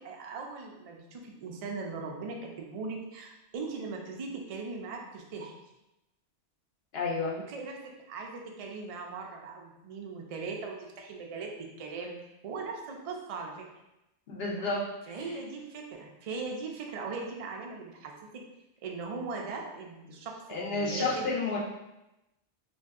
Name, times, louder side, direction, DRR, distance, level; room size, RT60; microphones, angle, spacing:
voice 1, 0.0-5.5 7.3-11.5 11.8-12.1 12.4-13.7 15.1-18.4 18.8-21.3, right 4 dB, 65° right, 1 dB, 0.3 m, -39 dB
voice 2, 6.9-7.4 14.3-14.8 15.1-15.3 20.5-21.6, left 3 dB, 65° left, -4 dB, 0.9 m, -31 dB
2.6 x 2.2 x 3.4 m, 0.93 s
omnidirectional pair, 1.1 m